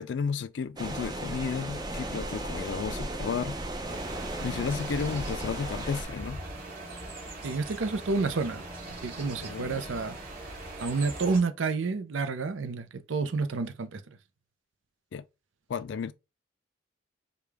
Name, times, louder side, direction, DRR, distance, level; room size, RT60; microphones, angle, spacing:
voice 1, 0.0-3.6 4.4-6.4 9.2-9.8 15.1-15.2 15.7-16.1, left 6 dB, 65° left, 0.4 m, -33 dB
sound 1, 0.8-6.0, right 1 dB, 20° right, 0.6 m, -35 dB
sound 2, 3.9-11.4, right 2 dB, 45° right, 2.7 m, -41 dB
voice 2, 7.4-10.2 10.8-14.0, right 4 dB, 90° right, 0.5 m, -30 dB
4.9 x 2.3 x 3.4 m
head